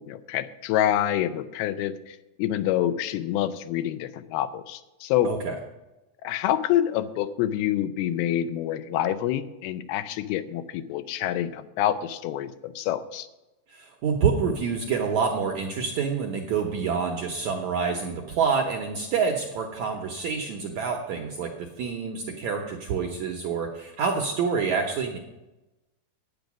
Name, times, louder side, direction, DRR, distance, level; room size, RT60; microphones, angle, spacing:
voice 1, 0.0-5.3 6.2-13.3, left 11 dB, 85° left, 12 dB, 2.5 m, -27 dB
voice 2, 5.2-5.5 13.7-25.2, right 5 dB, 75° right, 2 dB, 1.7 m, -27 dB
10.5 x 9.1 x 6.1 m, 1.0 s
omnidirectional pair, 4.5 m